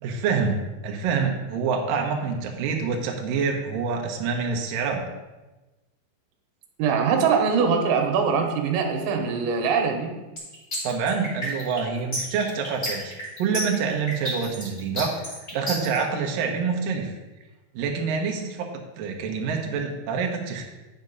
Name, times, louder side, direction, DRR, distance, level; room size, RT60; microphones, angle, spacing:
voice 1, 0.0-5.1 10.8-13.1 13.4-17.1 17.7-20.7, right 5 dB, 70° right, 2 dB, 2.3 m, -27 dB
voice 2, 6.8-10.1, right 6 dB, 85° right, 3 dB, 3.4 m, -22 dB
sound 1, 10.4-16.0, equal, 15° left, 2.2 m, -31 dB
9.7 x 6.1 x 5.3 m, 1.1 s
omnidirectional pair, 5.2 m